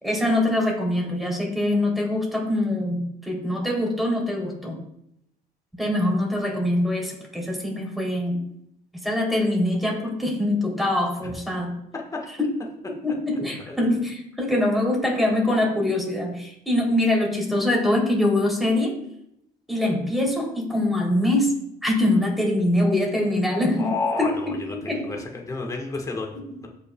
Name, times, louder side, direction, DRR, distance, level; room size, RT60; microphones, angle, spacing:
voice 1, 0.0-4.8 5.8-8.4 9.0-11.7 12.8-18.9 19.7-21.5 21.8-23.9 24.2-25.1 26.3-26.6, left 1 dB, ahead, -1 dB, 3.0 m, -23 dB
voice 2, 11.9-12.3 13.7-13.8 23.8-26.7, left 3 dB, 20° left, 0 dB, 1.3 m, -31 dB
14.0 x 5.8 x 2.3 m, 0.77 s
cardioid pair, 110°, 17 cm